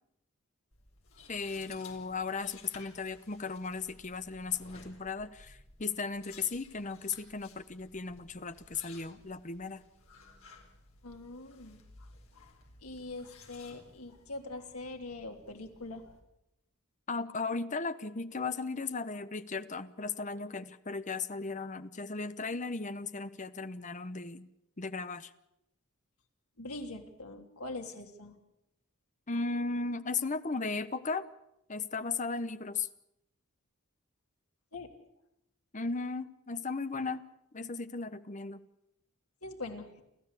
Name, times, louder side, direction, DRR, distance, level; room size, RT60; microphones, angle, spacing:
sound 1, 0.7-16.2, left 4 dB, 70° left, 4.3 m, -57 dB
voice 1, 1.3-9.8 17.1-24.5 24.8-25.3 29.3-31.3 31.7-32.9 35.7-37.2 37.5-38.6, left 4 dB, 35° left, 13 dB, 0.9 m, -36 dB
voice 2, 11.0-12.5 12.8-16.1 26.6-28.3 34.7-34.9 39.4-40.0, left 2 dB, 90° left, 3 dB, 3.2 m, -43 dB
29.0 x 14.0 x 8.3 m, 0.84 s
head